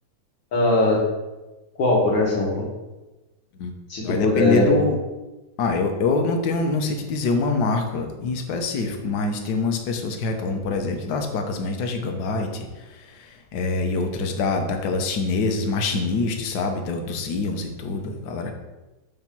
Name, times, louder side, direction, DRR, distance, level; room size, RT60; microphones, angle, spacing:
voice 1, 0.5-1.0 1.8-2.7 3.9-4.8, left 2 dB, 85° left, -3 dB, 2.5 m, -20 dB
voice 2, 4.0-5.0 5.6-18.5, left 3 dB, 65° left, 4 dB, 1.4 m, -25 dB
7.2 x 3.9 x 6.0 m, 1.1 s
omnidirectional pair, 2.0 m